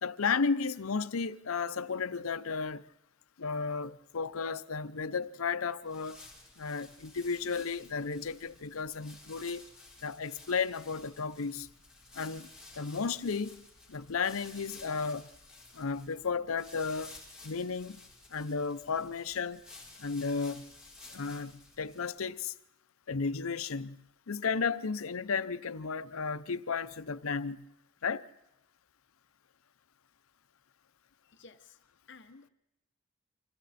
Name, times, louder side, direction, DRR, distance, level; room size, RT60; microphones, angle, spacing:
voice 1, 0.0-2.8 3.4-6.2 6.6-9.6 10.0-11.7 12.1-12.5 12.8-13.6 13.9-15.3 15.7-17.2 17.4-19.6 20.0-20.7 21.1-22.5 23.1-24.0 24.3-27.7 28.0-28.3, left 5 dB, 85° left, 0.7 m, -34 dB
sound 1, 5.8-22.4, left 2 dB, 5° right, 3.8 m, -54 dB
voice 2, 31.2-31.8 32.1-32.5, left 4 dB, 55° left, 0.9 m, -54 dB
29.0 x 26.0 x 4.3 m
head